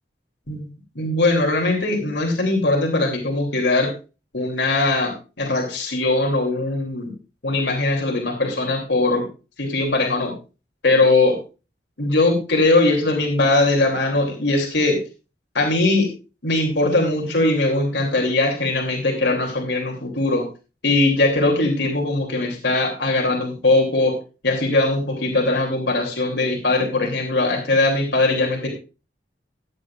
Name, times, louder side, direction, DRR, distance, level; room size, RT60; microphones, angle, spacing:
voice 1, 0.9-3.9 4.3-7.1 7.4-9.3 9.6-10.3 10.8-11.4 12.0-15.0 15.5-16.1 16.4-20.5 20.8-24.2 24.4-28.7, left 2 dB, 80° left, 2 dB, 2.9 m, -20 dB
14.5 x 9.8 x 2.5 m, 0.31 s
head